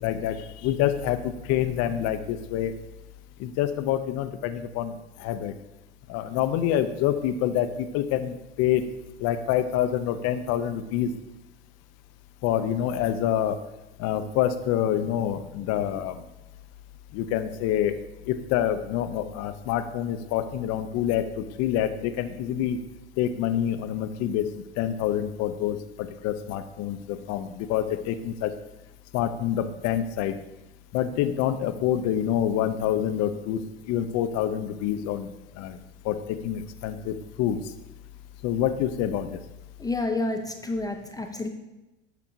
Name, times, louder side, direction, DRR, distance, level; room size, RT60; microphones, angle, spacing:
voice 1, 0.0-2.7 3.4-5.5 6.1-8.9 9.2-11.1 12.4-13.6 14.0-16.2 17.1-18.0 18.3-22.8 23.2-28.5 29.1-30.4 30.9-33.6 33.9-35.3 35.6-35.8 36.0-37.6 38.4-39.4, left 10 dB, 50° left, 11 dB, 0.6 m, -27 dB
voice 2, 39.8-41.5, left 2 dB, 10° left, 5 dB, 0.5 m, -29 dB
9.0 x 5.9 x 2.6 m, 1.0 s
hypercardioid pair, 80°, 32 cm